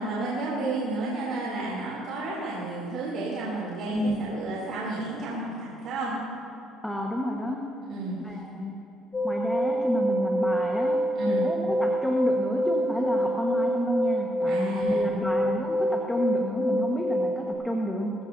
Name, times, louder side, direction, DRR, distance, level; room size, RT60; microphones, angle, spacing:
voice 1, 0.0-6.1 7.9-8.1 11.1-11.4 14.5-15.1, right 2 dB, 60° right, -5 dB, 2.9 m, -32 dB
voice 2, 6.8-7.6 8.2-8.7 9.2-18.1, equal, 5° left, 0 dB, 1.3 m, -30 dB
sound 1, 9.1-17.5, equal, 25° left, 1.8 m, -26 dB
21.5 x 14.5 x 2.7 m, 2.9 s
cardioid pair, 115°, 0 cm